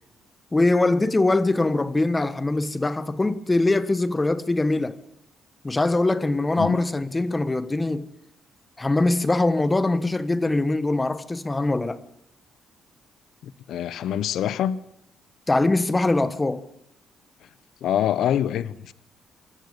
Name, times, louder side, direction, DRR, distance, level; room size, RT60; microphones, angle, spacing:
voice 1, 0.5-5.0 5.6-8.1 8.8-12.0 15.5-16.6, left 2 dB, 20° left, 1.2 m, -22 dB
voice 2, 13.4-14.8 17.8-18.9, left 10 dB, 75° left, 0.8 m, -25 dB
24.5 x 14.0 x 8.3 m
cardioid pair, 90°, 0 cm